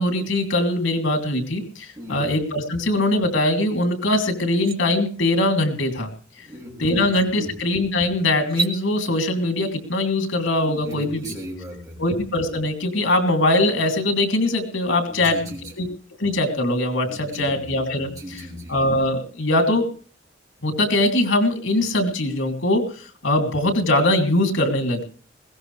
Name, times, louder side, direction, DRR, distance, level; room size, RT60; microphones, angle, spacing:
voice 1, 0.0-6.1 6.8-11.2 12.0-15.5 15.8-15.9 16.2-18.1 18.7-19.9 20.6-25.0, left 1 dB, 90° left, 5 dB, 3.0 m, -21 dB
voice 2, 2.0-2.3 6.4-7.5 10.6-12.0 15.1-15.7 17.1-18.8, equal, 20° right, -2 dB, 6.0 m, -37 dB
sound 1, 3.8-3.9 4.3-4.8 6.4-6.5 7.0-7.3 8.4-8.8, right 4 dB, 50° right, 2.4 m, -29 dB
21.0 x 17.0 x 3.3 m, 0.41 s
head